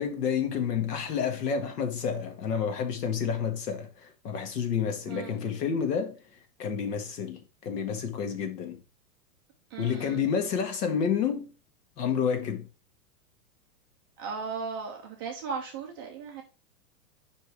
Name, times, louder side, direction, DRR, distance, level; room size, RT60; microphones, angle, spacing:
voice 1, 0.0-8.8 9.8-11.5 12.0-12.7, left 7 dB, 85° left, 1.9 m, -30 dB
voice 2, 9.7-10.2 14.2-16.4, right 5 dB, 20° right, 0.3 m, -36 dB
5.3 x 4.5 x 4.7 m
hypercardioid pair, 140°, 47 cm